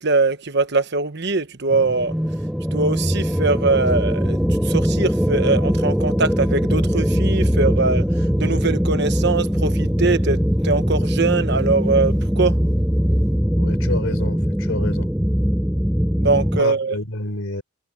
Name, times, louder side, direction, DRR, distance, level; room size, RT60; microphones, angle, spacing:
voice 1, 0.0-2.1 2.7-12.6 16.2-17.0, right 3 dB, 50° right, 1.2 m, -22 dB
sound 1, 1.7-16.6, equal, ahead, 0.7 m, -21 dB
voice 2, 13.6-15.1 16.6-17.6, left 1 dB, 70° left, 3.9 m, -28 dB
head